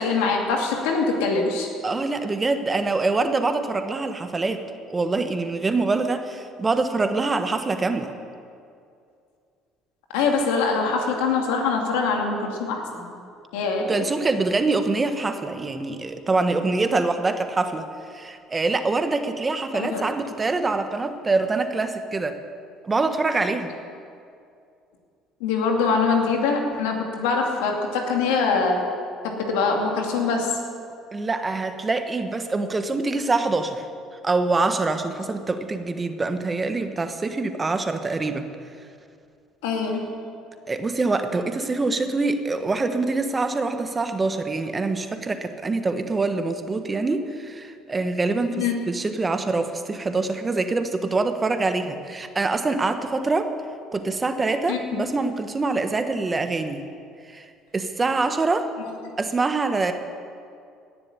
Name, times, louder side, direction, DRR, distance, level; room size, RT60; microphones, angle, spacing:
voice 1, 0.0-1.7 10.1-13.2 13.5-14.1 19.7-20.0 25.4-28.8 29.2-30.6 39.6-40.1 48.5-48.7 54.7-55.0, left 4 dB, 85° left, 1 dB, 2.4 m, -23 dB
voice 2, 1.8-8.1 13.8-22.4 22.8-23.7 31.1-33.9 34.2-38.5 40.7-53.5 53.9-56.8 57.3-57.5 57.7-58.7 59.2-59.9, right 3 dB, 25° right, 8 dB, 1.3 m, -25 dB
17.0 x 7.1 x 9.9 m, 2.4 s
supercardioid pair, 85°, 0 cm